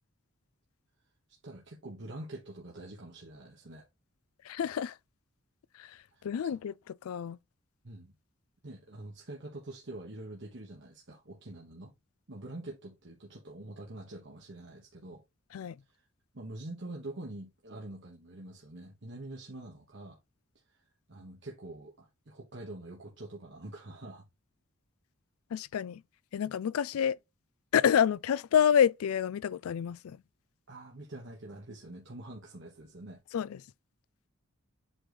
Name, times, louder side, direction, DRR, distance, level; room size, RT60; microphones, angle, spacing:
voice 1, 1.4-3.9 6.1-6.6 7.8-8.1 8.6-11.9 12.3-15.2 15.9-16.0 16.3-20.2 21.1-24.3 30.7-33.2, right 2 dB, 60° right, 1.3 m, -45 dB
voice 2, 4.5-4.9 5.8-5.9 6.2-6.7 7.0-7.4 15.5-15.7 25.5-26.0 26.3-27.2 27.7-30.2 33.3-33.6, left 8 dB, 90° left, 0.4 m, -28 dB
7.8 x 3.2 x 3.9 m
head